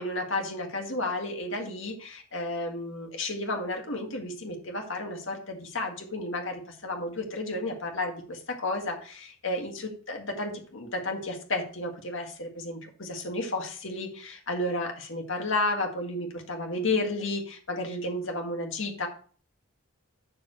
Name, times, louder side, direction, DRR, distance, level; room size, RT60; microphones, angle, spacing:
voice 1, 0.0-19.1, left 2 dB, 65° left, 2 dB, 2.0 m, -32 dB
12.0 x 7.1 x 3.2 m, 0.43 s
head